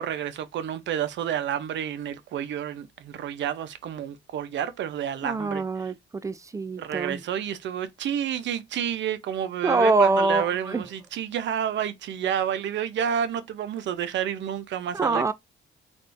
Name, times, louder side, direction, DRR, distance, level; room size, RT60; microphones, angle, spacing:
voice 1, 0.0-5.6 6.8-15.3, right 9 dB, 65° right, 0.6 m, -30 dB
voice 2, 5.2-7.2 9.6-10.8 14.9-15.3, right 3 dB, 15° right, 0.4 m, -24 dB
3.5 x 2.5 x 2.5 m
cardioid pair, 90°, 20 cm